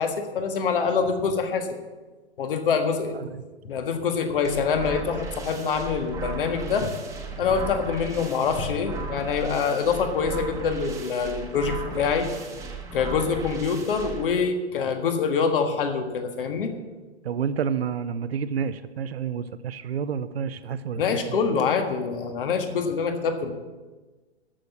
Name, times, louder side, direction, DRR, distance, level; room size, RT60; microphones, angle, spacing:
voice 1, 0.0-1.8 2.4-3.2 3.6-6.9 7.3-12.3 12.9-16.7 21.0-23.5, left 5 dB, 55° left, 6 dB, 1.7 m, -25 dB
sound 1, 4.4-14.3, right 4 dB, 10° right, 1.4 m, -36 dB
voice 2, 17.2-21.4, right 7 dB, 65° right, 13 dB, 0.7 m, -29 dB
13.5 x 6.4 x 7.0 m, 1.3 s
figure-of-eight pair, 120°, 33 cm